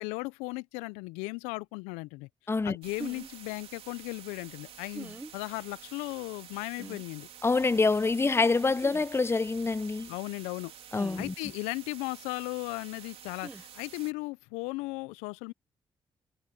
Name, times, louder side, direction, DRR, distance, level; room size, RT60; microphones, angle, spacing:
voice 1, 0.0-7.3 10.1-10.7 11.2-15.5, left 25 dB, 85° left, 0.4 m, -37 dB
sound 1, 2.8-14.1, right 8 dB, 65° right, 3.1 m, -50 dB
sound 2, 3.0-3.3 4.9-5.3 6.8-7.0 8.8-9.0 10.9-11.3 13.4-13.6, right 2 dB, 15° right, 0.6 m, -42 dB
voice 2, 7.4-10.1 10.9-11.3, left 3 dB, 25° left, 0.6 m, -26 dB
hypercardioid pair, 45°, 11 cm